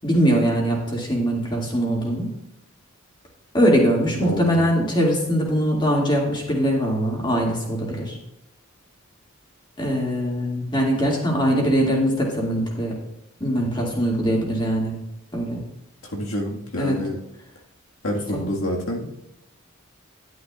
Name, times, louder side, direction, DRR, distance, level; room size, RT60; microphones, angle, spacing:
voice 1, 0.0-2.3 3.5-8.2 9.8-13.0 13.4-15.0 15.3-15.6 16.8-17.0 18.3-18.4, equal, 25° left, -2 dB, 2.3 m, -22 dB
voice 2, 4.2-4.8 16.1-17.2 18.0-19.1, left 1 dB, 80° left, -1 dB, 1.8 m, -28 dB
11.0 x 9.9 x 2.4 m, 0.91 s
head